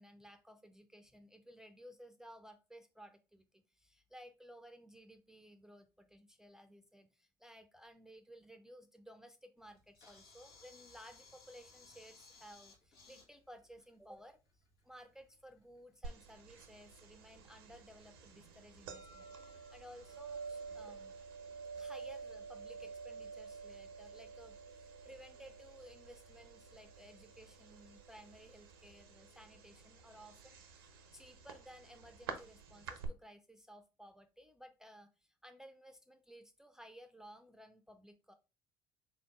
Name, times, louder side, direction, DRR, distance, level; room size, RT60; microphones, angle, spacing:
voice 1, 0.0-14.4 14.8-21.1 21.8-38.3, equal, 5° right, 9 dB, 0.4 m, -57 dB
Camera, 9.6-28.9, left 4 dB, 90° left, 1.2 m, -67 dB
sound 1, 16.0-33.1, right 5 dB, 90° right, 0.6 m, -50 dB
3.6 x 2.6 x 3.4 m, 0.30 s
hypercardioid pair, 70°, 12 cm